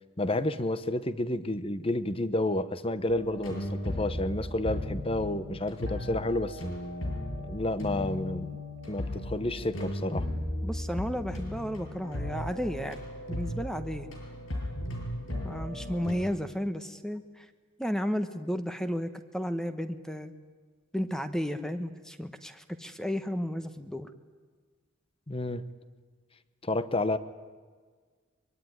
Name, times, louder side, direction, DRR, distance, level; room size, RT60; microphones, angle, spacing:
voice 1, 0.2-6.6 7.5-8.6 8.9-10.3 25.3-25.6 26.6-27.2, left 1 dB, 25° left, 13 dB, 1.0 m, -30 dB
sound 1, 3.1-16.1, left 1 dB, 85° left, 6.9 m, -36 dB
voice 2, 10.6-13.0 13.3-14.1 15.4-17.5 17.8-20.3 20.9-24.1, equal, 5° left, 9 dB, 1.1 m, -33 dB
23.5 x 23.0 x 9.6 m, 1.5 s
head